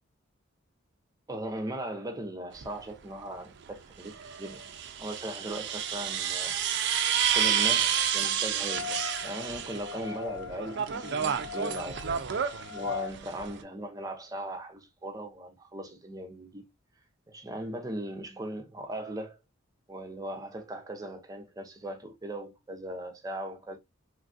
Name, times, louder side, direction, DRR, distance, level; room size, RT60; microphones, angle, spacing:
voice 1, 1.3-4.7 5.0-6.6 7.1-12.0 12.7-16.7 17.3-19.4 19.9-23.8, right 1 dB, 15° right, 0.6 m, -38 dB
sound 1, 2.5-2.7 4.0-10.0 10.4-13.6, right 8 dB, 55° right, 0.4 m, -30 dB
sound 2, 8.6-13.1, left 7 dB, 75° left, 0.3 m, -40 dB
3.1 x 2.4 x 2.5 m
head